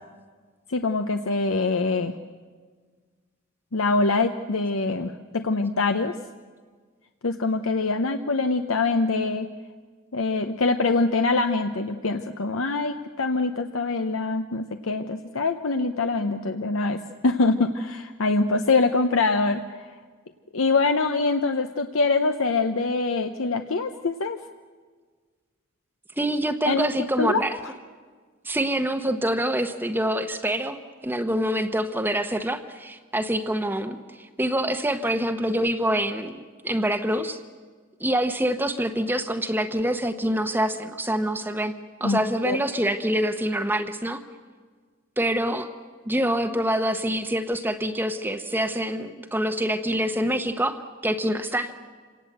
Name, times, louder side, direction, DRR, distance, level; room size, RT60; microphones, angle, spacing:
voice 1, 0.7-2.1 3.7-6.1 7.2-9.5 10.1-19.8 20.5-24.4 26.7-26.9 27.2-27.4 42.0-42.6, left 3 dB, 80° left, 7 dB, 0.8 m, -24 dB
voice 2, 26.2-27.6 28.4-30.8 31.0-34.0 34.4-36.4 36.6-37.4 38.0-41.7 42.0-44.2 45.2-45.7 46.0-50.8 51.0-51.7, right 1 dB, 10° right, 8 dB, 0.9 m, -25 dB
27.0 x 18.0 x 7.9 m, 1.5 s
head